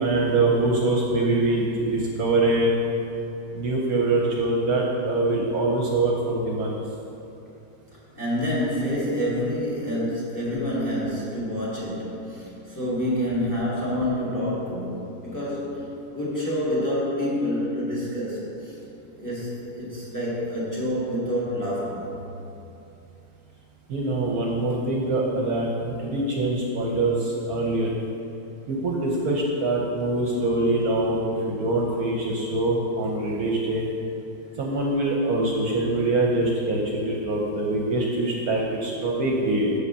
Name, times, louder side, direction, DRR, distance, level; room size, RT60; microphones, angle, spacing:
voice 1, 0.0-2.8 3.5-6.8 23.9-27.9 28.7-31.2 31.5-33.9 34.6-39.7, right 2 dB, 65° right, -1 dB, 1.1 m, -24 dB
voice 2, 8.1-15.9 16.1-18.8 19.1-22.1, equal, 10° left, -7 dB, 1.9 m, -27 dB
6.5 x 5.1 x 6.7 m, 2.8 s
omnidirectional pair, 1.8 m